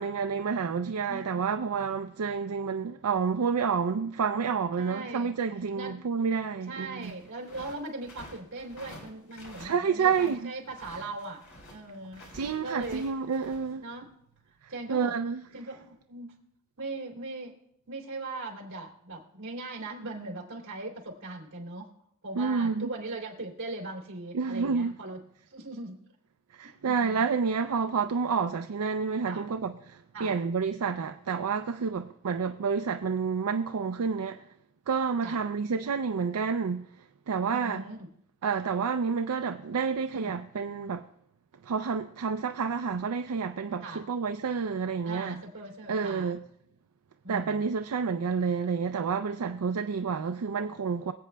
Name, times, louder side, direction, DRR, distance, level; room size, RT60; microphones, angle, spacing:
voice 1, 0.0-7.1 9.6-10.5 12.3-13.8 14.6-15.4 22.4-22.9 24.3-24.9 26.5-34.4 34.9-37.8 38.4-41.1 41.6-45.4 45.9-46.4 47.3-51.1, right 5 dB, 85° right, 0.4 m, -29 dB
voice 2, 1.1-1.5 4.8-5.3 5.7-6.1 6.7-12.3 12.6-13.0 13.8-14.1 14.7-15.1 15.5-16.3 16.8-17.5 17.9-21.9 22.2-25.2 25.5-26.0 26.8-27.3 29.3-29.5 30.1-30.4 35.2-35.4 37.5-38.1 40.1-40.4 43.8-44.0 45.0-46.4 47.2-47.6, right 2 dB, 60° right, 3.1 m, -39 dB
sound 1, 7.0-10.4 10.7-13.7, left 1 dB, 65° left, 3.4 m, -49 dB
25.0 x 8.4 x 2.3 m
head